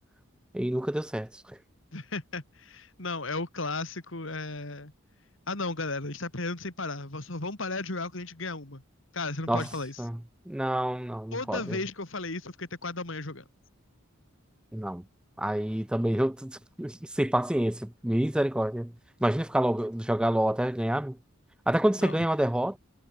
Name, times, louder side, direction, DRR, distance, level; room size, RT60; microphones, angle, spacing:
voice 1, 0.5-1.6 9.5-9.7 10.0-10.2 10.5-11.8 14.7-15.0 15.4-18.9 19.2-21.2 21.7-22.8, right 1 dB, 5° right, 0.3 m, -28 dB
voice 2, 1.9-4.9 5.5-8.8 9.1-10.1 11.3-13.4 22.0-22.3, left 3 dB, 60° left, 2.5 m, -35 dB
head